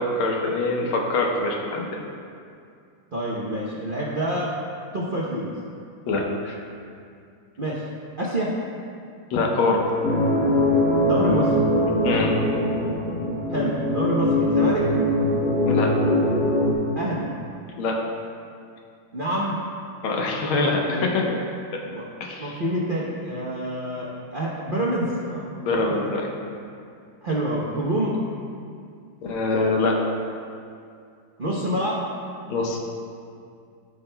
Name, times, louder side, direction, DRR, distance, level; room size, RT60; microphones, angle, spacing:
voice 1, 0.0-2.0 6.1-6.6 9.3-9.8 12.0-12.4 15.7-15.9 17.8-18.0 20.0-21.4 22.2-22.6 25.6-26.3 29.2-30.0 32.5-32.8, left 3 dB, 85° left, 0 dB, 1.7 m, -24 dB
voice 2, 3.1-4.5 4.9-5.5 7.6-7.9 8.2-8.5 11.0-11.5 13.5-14.9 17.0-17.3 19.1-19.6 20.9-21.1 21.9-22.0 22.4-26.1 27.2-28.2 31.4-32.0, right 1 dB, 65° right, -5 dB, 0.5 m, -27 dB
sound 1, 10.0-16.7, left 1 dB, 55° left, 1.4 m, -22 dB
14.5 x 6.0 x 2.2 m, 2.4 s
omnidirectional pair, 2.2 m